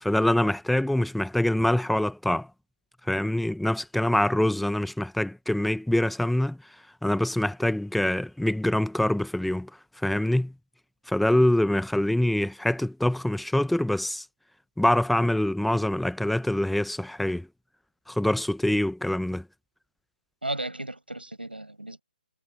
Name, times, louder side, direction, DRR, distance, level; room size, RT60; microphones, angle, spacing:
voice 1, 0.0-2.5 3.1-6.6 7.0-9.7 10.0-10.5 11.1-14.2 14.8-17.5 18.1-19.4, left 1 dB, ahead, 1.2 m, -25 dB
voice 2, 20.4-22.0, right 1 dB, 80° right, 7.0 m, -34 dB
figure-of-eight pair, 140°, 5 cm